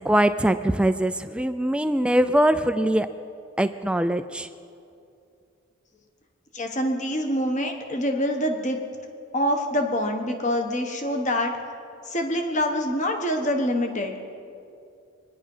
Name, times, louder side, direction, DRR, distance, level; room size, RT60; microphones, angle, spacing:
voice 1, 0.0-3.1 3.6-4.5, right 1 dB, 5° right, 10 dB, 0.3 m, -22 dB
voice 2, 6.5-8.8 9.3-11.5 12.1-14.2, equal, 35° left, 4 dB, 1.2 m, -25 dB
24.0 x 10.5 x 5.5 m, 2.5 s
head